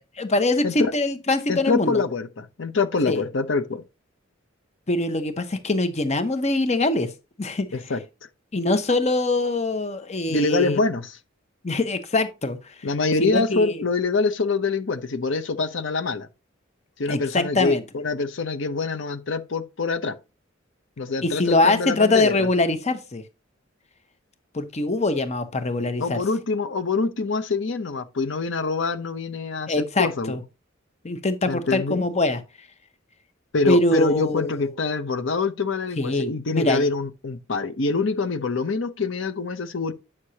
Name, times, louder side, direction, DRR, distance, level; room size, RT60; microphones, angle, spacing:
voice 1, 0.2-2.0 3.1-3.2 4.9-7.1 7.4-7.7 8.5-10.8 11.6-12.7 13.2-13.8 17.1-17.8 21.2-23.2 24.5-26.2 29.7-30.4 31.0-32.4 33.7-34.7 36.0-36.9, left 2 dB, 35° left, 0.9 m, -23 dB
voice 2, 1.5-3.8 7.7-8.0 10.3-11.2 12.8-16.3 17.0-20.1 21.0-22.5 26.0-30.4 31.5-32.1 33.5-39.9, left 3 dB, 65° left, 0.8 m, -25 dB
8.7 x 6.4 x 2.8 m
head